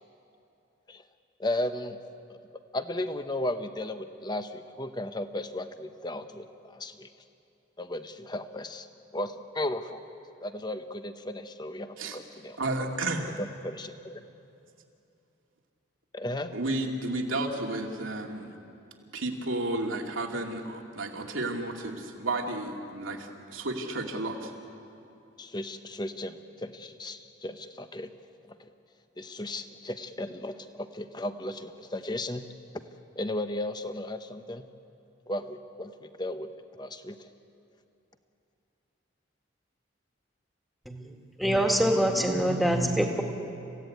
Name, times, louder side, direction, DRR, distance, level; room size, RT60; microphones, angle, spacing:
voice 1, 1.4-2.0 2.7-7.1 7.8-8.9 9.1-10.0 10.4-12.6 13.4-14.2 16.1-16.5 25.4-28.1 29.2-32.4 33.2-34.6 35.3-36.5 36.8-37.2, left 1 dB, 20° left, 9 dB, 1.0 m, -35 dB
voice 2, 12.6-13.3 16.5-18.5 19.1-24.5, right 2 dB, 85° right, 1 dB, 2.6 m, -32 dB
voice 3, 41.4-43.2, equal, ahead, 2 dB, 2.0 m, -25 dB
29.5 x 16.5 x 9.3 m, 2.7 s
head